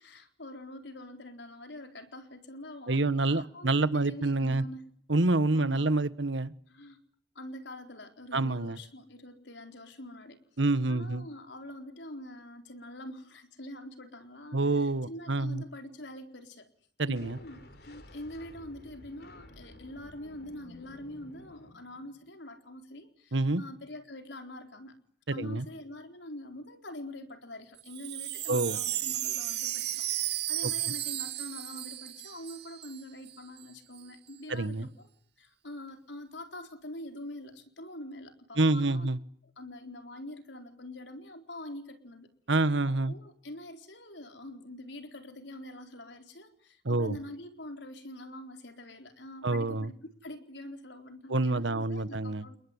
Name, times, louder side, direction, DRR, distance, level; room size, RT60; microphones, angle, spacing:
voice 1, 0.0-4.8 5.5-5.9 6.7-7.0 7.3-10.4 10.9-16.7 17.1-25.0 25.3-35.1 35.4-39.1 39.4-42.3 42.9-50.0 50.2-52.6, left 1 dB, 75° left, 4.2 m, -45 dB
voice 2, 2.9-4.6 5.1-6.5 8.3-8.8 10.6-11.3 14.5-15.6 17.0-17.4 23.3-23.6 25.4-25.6 28.5-28.8 34.5-34.9 38.6-39.2 42.5-43.1 46.8-47.2 49.4-49.9 51.3-52.4, right 2 dB, 80° right, 1.4 m, -27 dB
sound 1, 17.1-22.3, left 1 dB, 55° left, 4.2 m, -53 dB
Wind chime, 27.8-33.0 33.3-33.4 33.6-34.0, right 14 dB, 65° right, 2.1 m, -34 dB
30.0 x 20.0 x 9.6 m
head